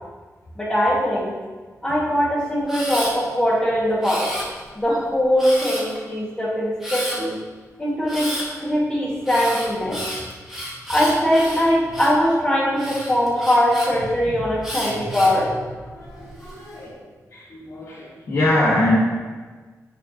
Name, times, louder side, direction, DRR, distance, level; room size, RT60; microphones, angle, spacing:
voice 1, 0.6-1.3 1.8-4.3 4.8-7.4 7.8-8.3 8.6-10.0 10.9-15.5, equal, 15° left, -6 dB, 2.0 m, -21 dB
Camera, 2.7-3.1 4.0-4.8 5.4-6.0 6.8-7.2 8.1-8.5 9.2-12.2 12.8-13.9 14.6-15.4 16.0-16.5, equal, 5° right, 1.8 m, -31 dB
voice 2, 15.8-19.0, left 1 dB, 55° left, -9 dB, 1.6 m, -24 dB
9.7 x 4.7 x 2.9 m, 1.4 s
wide cardioid pair, 145°, 6 cm